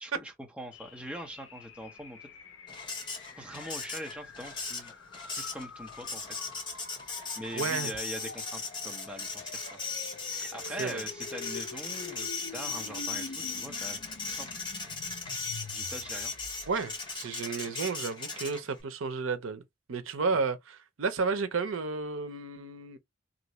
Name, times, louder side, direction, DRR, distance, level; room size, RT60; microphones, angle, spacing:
voice 1, 0.0-2.3 3.3-4.9 5.3-6.4 7.0-9.8 10.3-14.0 14.2-14.9 15.7-16.3 20.3-20.4, right 1 dB, 5° right, 0.8 m, -43 dB
sound 1, 0.7-17.0, left 4 dB, 65° left, 0.6 m, -47 dB
Printer, 2.7-18.8, left 4 dB, 25° left, 1.0 m, -38 dB
voice 2, 7.5-7.9 10.8-11.0 16.7-19.6 19.9-23.0, right 4 dB, 80° right, 0.6 m, -32 dB
3.0 x 2.5 x 3.0 m
head